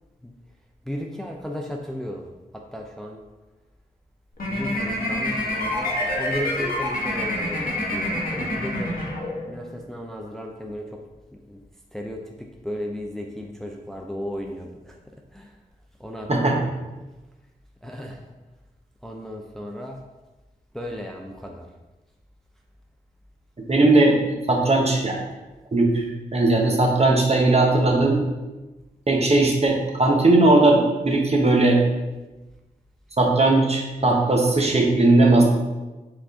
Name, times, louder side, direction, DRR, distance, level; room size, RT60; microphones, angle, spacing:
voice 1, 0.9-2.3 2.5-3.2 4.5-8.9 9.5-11.0 11.5-11.6 11.9-12.3 12.6-15.0 15.3-15.5 16.0-16.7 17.8-18.2 19.0-20.0 20.7-21.7, equal, ahead, 1 dB, 0.5 m, -35 dB
sound 1, 4.4-9.6, left 1 dB, 60° left, 1.3 m, -27 dB
voice 2, 23.6-24.1 24.5-25.2 25.7-26.0 26.3-28.2 29.1-31.8 33.2-35.4, right 2 dB, 40° right, 0 dB, 0.9 m, -18 dB
4.8 x 2.5 x 3.6 m, 1.1 s
cardioid pair, 40°, 16 cm